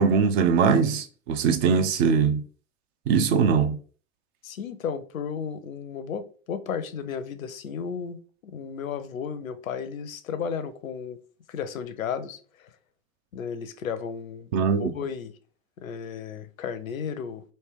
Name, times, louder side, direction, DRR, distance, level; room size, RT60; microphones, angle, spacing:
voice 1, 0.0-2.4 3.1-3.8 14.5-14.9, right 6 dB, 50° right, 0.6 m, -21 dB
voice 2, 4.4-11.2 11.5-12.7 13.3-14.5 14.8-15.4 15.8-17.4, left 7 dB, 85° left, 0.5 m, -34 dB
3.3 x 2.6 x 3.3 m
figure-of-eight pair, 80°, 40 cm